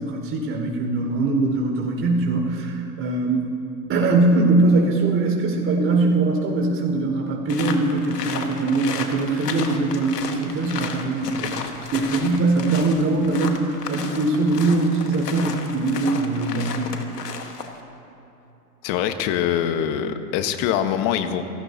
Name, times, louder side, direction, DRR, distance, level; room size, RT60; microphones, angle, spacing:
voice 1, 0.0-3.5 3.9-11.5 11.9-17.0, right 3 dB, 25° right, 0 dB, 4.9 m, -22 dB
sound 1, 7.5-17.8, left 5 dB, 80° left, 1.7 m, -33 dB
voice 2, 18.8-21.4, left 9 dB, 45° left, 8 dB, 1.4 m, -23 dB
28.0 x 18.0 x 2.9 m, 2.8 s
hypercardioid pair, 100°, 47 cm